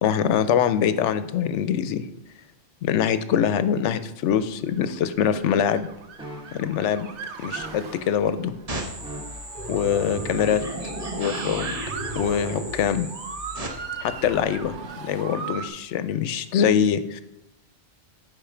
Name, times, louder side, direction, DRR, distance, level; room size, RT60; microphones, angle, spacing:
voice 1, 0.0-2.0 2.8-5.9 6.5-7.1 7.4-8.5 9.7-10.6 11.2-11.8 12.2-13.1 14.0-17.2, left 8 dB, 80° left, 12 dB, 0.9 m, -23 dB
Motor vehicle (road) / Siren, 4.5-15.7, right 5 dB, 70° right, 1.0 m, -39 dB
sound 1, 6.2-6.6 7.5-8.0 9.0-9.6 10.4-10.9 11.7-11.9, right 1 dB, 5° right, 1.4 m, -41 dB
sound 2, 8.7-13.7, right 1 dB, 35° right, 1.1 m, -33 dB
8.8 x 5.4 x 5.0 m, 0.87 s
omnidirectional pair, 1.2 m